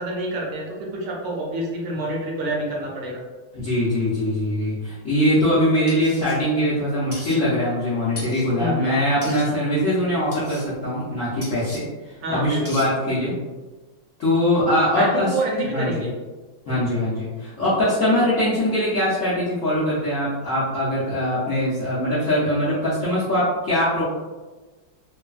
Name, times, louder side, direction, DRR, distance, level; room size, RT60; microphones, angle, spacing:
voice 1, 0.0-3.2 8.6-9.0 9.2-9.6 12.2-12.8 14.9-16.1 16.7-17.0, right 1 dB, 75° right, -2 dB, 1.2 m, -28 dB
voice 2, 3.5-11.8 12.3-13.3 14.2-15.3 15.7-16.0 16.7-24.0, left 1 dB, 70° left, -10 dB, 0.8 m, -22 dB
sound 1, 5.9-6.3 7.1-7.4 8.1-8.5 9.2-9.5 10.3-10.7 11.4-11.8 12.6-12.9, left 1 dB, 15° left, 0.5 m, -38 dB
3.1 x 2.1 x 2.3 m, 1.2 s
omnidirectional pair, 2.1 m